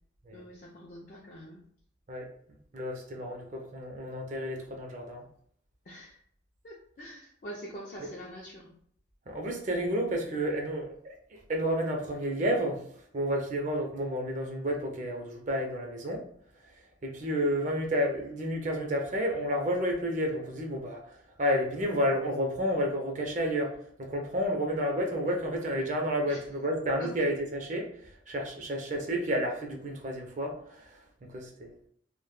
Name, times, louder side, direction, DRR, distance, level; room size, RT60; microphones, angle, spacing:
voice 1, 0.3-1.6 5.9-6.2 6.6-8.7 26.3-26.4 27.0-27.1, equal, 45° left, -3 dB, 0.4 m, -45 dB
voice 2, 2.7-5.3 8.0-8.1 9.3-16.2 17.0-23.7 24.0-31.7, equal, 40° right, 2 dB, 0.4 m, -31 dB
2.1 x 2.1 x 3.0 m, 0.63 s
head